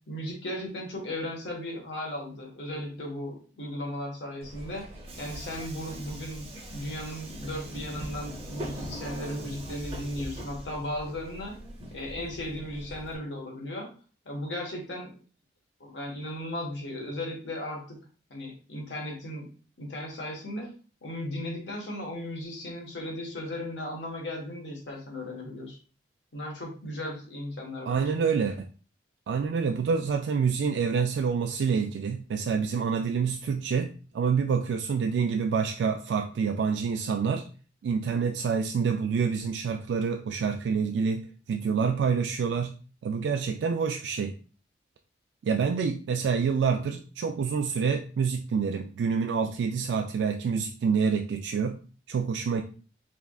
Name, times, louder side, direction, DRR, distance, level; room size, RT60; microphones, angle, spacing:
voice 1, 0.1-4.8 5.2-11.5 11.9-13.9 14.2-15.1 15.8-18.0 18.3-19.5 19.8-20.7 21.0-25.8 26.3-28.2, left 1 dB, 80° left, 0 dB, 1.2 m, -36 dB
Subway metro underground, 4.4-13.2, right 1 dB, 35° right, 0.8 m, -41 dB
voice 2, 27.9-28.7 29.3-37.4 37.8-42.8 43.0-44.3 45.4-51.8 52.1-52.6, right 6 dB, 75° right, 4 dB, 0.3 m, -27 dB
3.6 x 3.4 x 2.3 m, 0.38 s
head